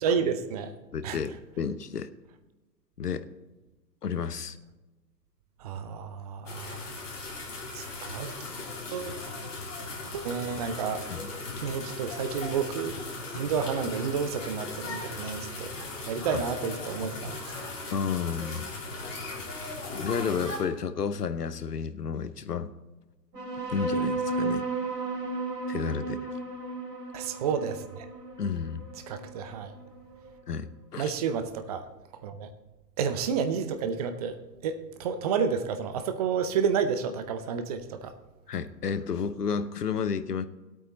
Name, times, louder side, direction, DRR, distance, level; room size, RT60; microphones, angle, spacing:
voice 1, 0.0-0.7 1.0-1.2 5.6-6.9 7.7-8.3 8.9-11.1 11.6-13.0 13.3-17.7 27.1-28.1 29.1-29.7 31.0-31.9 32.2-32.5 33.0-38.1, right 6 dB, 25° right, 9 dB, 0.6 m, -31 dB
voice 2, 0.9-2.1 3.0-3.2 4.0-4.6 11.1-11.3 16.3-16.4 17.9-19.0 19.9-22.7 23.7-24.7 25.7-26.3 28.4-28.9 30.5-31.1 38.5-40.5, left 6 dB, 70° left, 14 dB, 0.9 m, -31 dB
sound 1, 6.5-20.6, left 3 dB, 50° left, 3.5 m, -38 dB
sound 2, 23.3-30.3, right 3 dB, 65° right, 3.5 m, -33 dB
18.0 x 8.6 x 4.0 m, 1.2 s
figure-of-eight pair, 115°, 50 cm